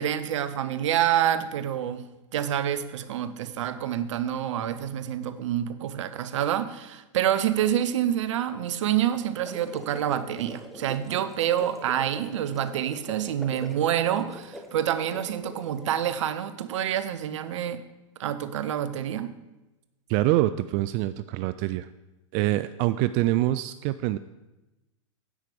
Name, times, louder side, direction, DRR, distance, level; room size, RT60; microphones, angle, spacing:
voice 1, 0.0-2.0 2.3-17.8 18.2-19.3, right 10 dB, 65° right, 13 dB, 0.8 m, -27 dB
sound 1, 9.3-16.1, equal, ahead, 1.2 m, -44 dB
voice 2, 20.1-21.9 22.3-24.2, right 15 dB, 45° right, 14 dB, 0.4 m, -25 dB
9.9 x 8.2 x 5.1 m, 1.0 s
hypercardioid pair, 105°, 16 cm